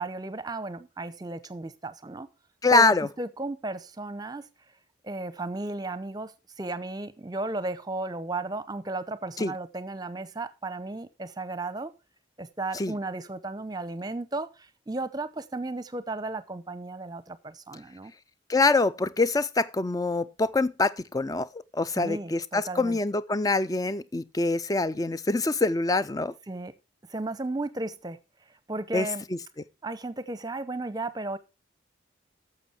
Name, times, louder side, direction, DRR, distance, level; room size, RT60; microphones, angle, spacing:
voice 1, 0.0-2.3 2.7-4.5 5.0-6.3 6.6-11.9 12.4-18.1 21.9-23.0 26.5-26.7 27.1-28.2 28.7-29.2 29.8-31.4, right 2 dB, 20° right, 0.7 m, -34 dB
voice 2, 2.6-3.1 9.4-9.5 12.7-12.9 18.5-26.3 28.9-29.1, left 3 dB, 20° left, 0.4 m, -25 dB
11.0 x 7.1 x 4.3 m
head